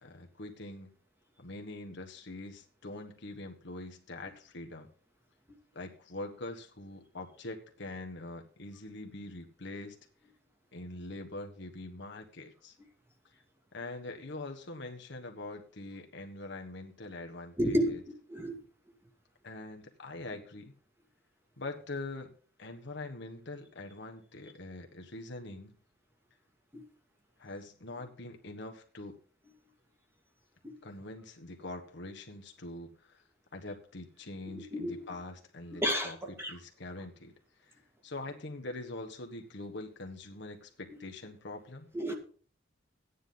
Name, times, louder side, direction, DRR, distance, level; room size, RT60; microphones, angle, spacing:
voice 1, 0.0-0.9 1.4-4.9 5.7-10.0 10.7-12.8 13.7-17.8 19.4-20.7 21.6-22.3 22.6-25.8 27.4-29.2 30.8-33.2 33.5-36.2 36.5-37.3 37.6-37.7 38.0-41.9, left 2 dB, 60° left, 1.4 m, -43 dB
voice 2, 17.6-17.9 18.3-18.6 26.7-26.8 30.6-30.7 34.5-35.1 35.7-36.5 41.9-42.1, equal, 10° right, 2.1 m, -31 dB
13.5 x 9.8 x 3.9 m
head